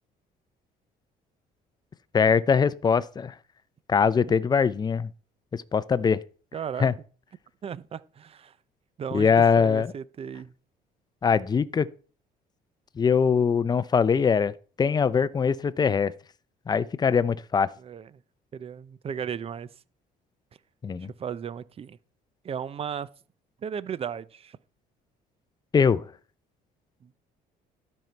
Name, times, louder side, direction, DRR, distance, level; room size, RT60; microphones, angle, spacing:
voice 1, 2.1-3.3 3.9-5.1 5.5-6.2 6.8-6.9 9.1-9.9 11.2-11.9 13.0-16.1 16.7-17.7 20.8-21.1 25.7-26.1, left 6 dB, 25° left, 0.5 m, -22 dB
voice 2, 6.5-6.9 7.6-8.5 9.0-10.5 17.8-18.1 18.5-19.7 21.2-22.0 22.4-23.1 23.6-24.6 27.0-27.1, right 7 dB, 35° right, 0.5 m, -35 dB
12.0 x 5.4 x 4.5 m
cardioid pair, 110°, 17 cm